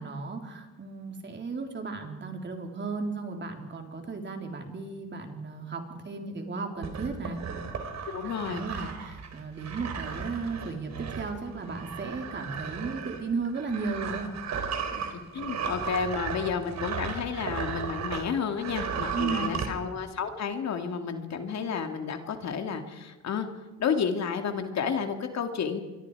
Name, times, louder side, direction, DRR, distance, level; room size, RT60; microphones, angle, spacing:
voice 1, 0.0-7.4 8.2-14.3 19.1-19.6, right 4 dB, 35° right, 3 dB, 3.8 m, -35 dB
sound 1, 6.8-18.3 18.6-19.7, right 6 dB, 60° right, 4.0 m, -35 dB
voice 2, 8.1-8.6 15.1-23.5 23.8-25.8, left 6 dB, 60° left, 6 dB, 2.6 m, -31 dB
26.5 x 23.0 x 4.9 m, 1.2 s
cardioid pair, 90°, 30 cm